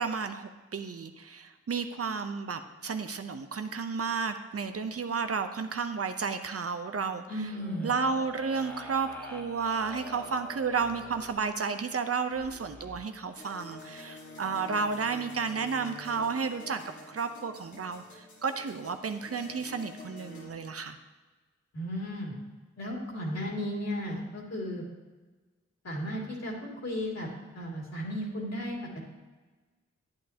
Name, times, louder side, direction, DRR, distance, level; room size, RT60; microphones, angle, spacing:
voice 1, 0.0-7.5 7.8-16.8 17.1-21.0, right 5 dB, 55° right, 8 dB, 0.7 m, -32 dB
voice 2, 7.3-7.9 21.7-22.3 22.8-24.8 25.8-26.5 26.8-27.3 27.5-28.8, equal, 60° left, -3 dB, 2.5 m, -34 dB
sound 1, 7.5-11.4 12.3-13.0, equal, 5° left, 2.1 m, -47 dB
sound 2, 13.4-20.5, left 2 dB, 80° left, 1.5 m, -48 dB
10.5 x 8.7 x 2.8 m, 1.3 s
cardioid pair, 45°, 29 cm